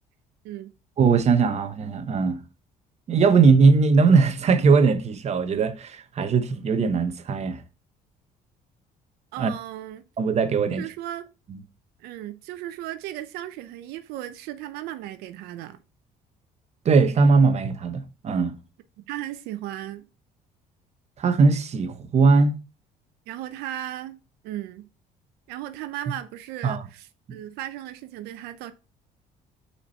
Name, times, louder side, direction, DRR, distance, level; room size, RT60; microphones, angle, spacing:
voice 1, 1.0-2.4 3.1-7.6 9.4-9.5 10.2-10.8 16.8-18.5 21.2-22.6 26.6-26.8, right 4 dB, 45° right, 0.8 m, -20 dB
voice 2, 9.3-10.0 10.7-11.3 12.0-15.8 19.1-20.1 23.3-24.2 24.4-24.9 25.5-28.7, right 13 dB, 85° right, 0.6 m, -36 dB
5.7 x 4.3 x 4.3 m
cardioid pair, 105°, 16 cm